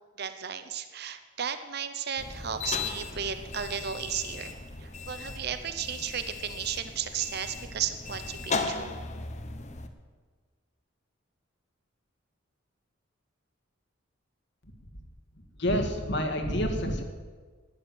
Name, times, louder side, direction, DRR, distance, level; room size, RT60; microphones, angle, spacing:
voice 1, 0.2-4.5 4.8-8.9, right 8 dB, 50° right, 10 dB, 0.8 m, -34 dB
sound 1, 2.2-9.9, left 4 dB, 35° left, 1.1 m, -37 dB
voice 2, 15.6-17.0, equal, 55° left, 3 dB, 1.9 m, -28 dB
12.5 x 10.0 x 9.2 m, 1.5 s
head